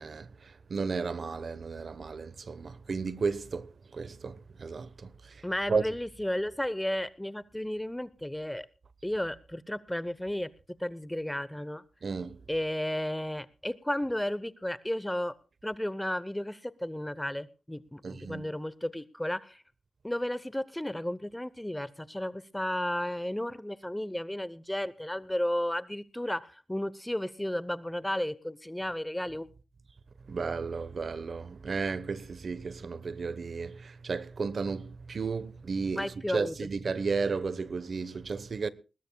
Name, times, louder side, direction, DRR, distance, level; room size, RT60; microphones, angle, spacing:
voice 1, 0.0-5.4 5.7-5.8 12.0-12.4 18.0-18.5 30.3-38.7, right 4 dB, 65° right, 1.0 m, -34 dB
voice 2, 5.4-8.7 9.0-10.5 10.8-11.8 12.5-15.3 15.6-19.6 20.0-29.5 36.0-36.6, left 1 dB, 10° left, 0.8 m, -33 dB
20.5 x 19.0 x 2.3 m
cardioid pair, 50°, 0 cm